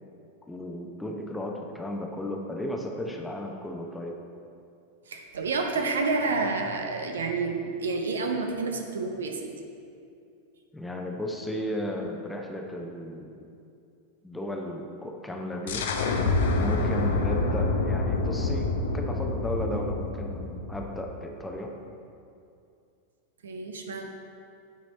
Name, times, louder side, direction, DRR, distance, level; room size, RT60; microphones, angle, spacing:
voice 1, 0.5-4.1 10.7-13.5 14.2-15.8 16.5-21.7, left 1 dB, 5° left, 1 dB, 0.7 m, -34 dB
voice 2, 5.1-9.5 19.7-19.8 23.4-24.1, right 3 dB, 65° right, 4 dB, 0.7 m, -29 dB
sound 1, 15.7-21.2, left 3 dB, 60° left, 0.6 m, -27 dB
9.2 x 4.5 x 4.2 m, 2.5 s
figure-of-eight pair, 90°, 0 cm